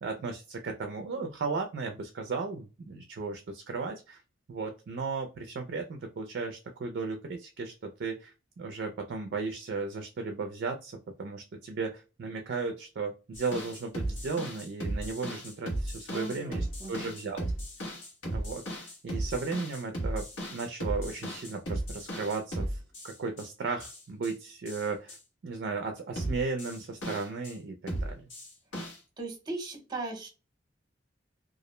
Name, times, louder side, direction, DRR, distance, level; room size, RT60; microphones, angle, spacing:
voice 1, 0.0-4.2 4.5-17.4 18.3-25.2 25.4-28.3, right 4 dB, 55° right, 6 dB, 0.4 m, -35 dB
sound 1, 13.3-23.5 23.8-24.3 24.7-25.2 26.2-27.5 27.9-29.0, right 1 dB, 80° left, 1.0 m, -36 dB
voice 2, 16.1-17.1 29.2-30.3, right 2 dB, 20° right, 3 dB, 0.8 m, -38 dB
2.3 x 2.0 x 2.9 m, 0.31 s
head